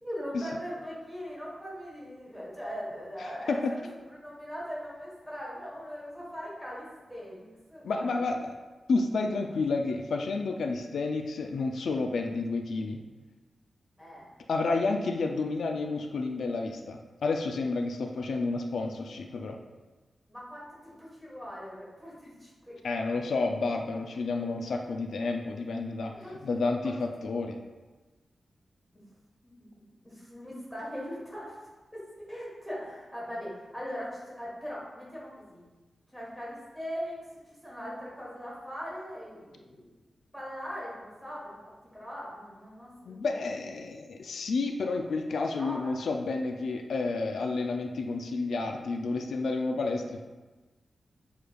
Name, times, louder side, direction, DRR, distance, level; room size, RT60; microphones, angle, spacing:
voice 1, 0.0-3.6 4.1-8.3 14.0-14.3 20.3-23.3 26.1-26.9 28.9-29.0 29.4-29.7 30.0-31.5 31.9-32.0 32.3-35.6 36.1-37.2 37.5-39.9 40.3-43.2 45.4-46.1, equal, ahead, -6 dB, 1.3 m, -40 dB
voice 2, 7.8-8.5 8.9-13.0 14.5-19.6 22.8-26.1 26.4-27.6 43.1-50.2, left 3 dB, 85° left, 3 dB, 0.3 m, -30 dB
6.7 x 3.1 x 2.3 m, 1.2 s
wide cardioid pair, 170°, 0 cm